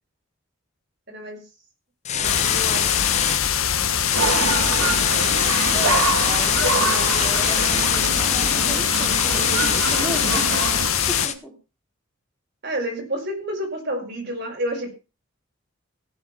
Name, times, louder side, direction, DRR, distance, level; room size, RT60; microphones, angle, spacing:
voice 1, 1.1-1.4 2.1-3.0 12.6-14.9, equal, 50° right, 1 dB, 6.1 m, -29 dB
sound 1, 2.0-3.4 4.0-11.3, left 8 dB, 35° left, 1.1 m, -25 dB
sound 2, 2.2-11.3, left 8 dB, 85° left, 1.6 m, -23 dB
sound 3, 4.1-10.9, right 3 dB, 80° right, 2.8 m, -25 dB
voice 2, 5.7-10.5 11.1-11.5, equal, 5° right, -1 dB, 3.5 m, -35 dB
16.5 x 8.0 x 5.8 m, 0.31 s
head